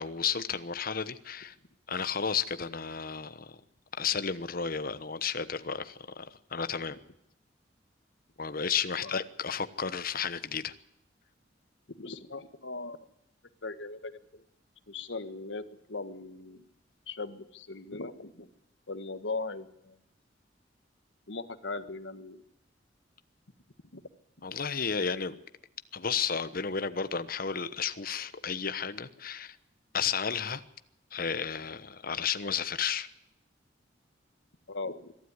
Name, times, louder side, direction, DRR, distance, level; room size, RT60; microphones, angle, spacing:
voice 1, 0.0-1.5 1.9-3.6 4.0-7.0 8.4-10.7 24.4-25.3 25.9-29.6 29.9-30.6 31.1-33.1, left 6 dB, 50° left, 12 dB, 1.1 m, -32 dB
voice 2, 12.0-13.0 13.6-14.4 14.9-16.6 17.1-18.5 18.9-20.0 21.3-22.4 23.9-24.0 34.7-35.1, left 3 dB, 80° left, 11 dB, 1.5 m, -39 dB
23.0 x 13.0 x 9.7 m, 0.81 s
head